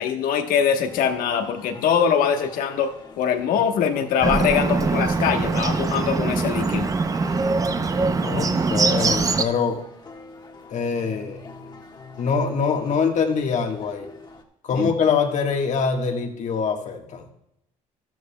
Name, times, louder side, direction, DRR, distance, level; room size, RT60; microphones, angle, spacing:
voice 1, 0.0-6.9 14.7-14.9, left 7 dB, 75° left, 6 dB, 1.2 m, -23 dB
sound 1, 0.8-14.4, left 3 dB, 30° left, 1.4 m, -44 dB
Bird, 4.2-9.4, right 4 dB, 25° right, 0.6 m, -22 dB
voice 2, 8.2-9.8 10.7-11.4 12.2-14.1 14.6-17.3, left 5 dB, 55° left, 4 dB, 1.5 m, -24 dB
12.5 x 12.5 x 2.3 m, 0.84 s
cardioid pair, 100°, 15 cm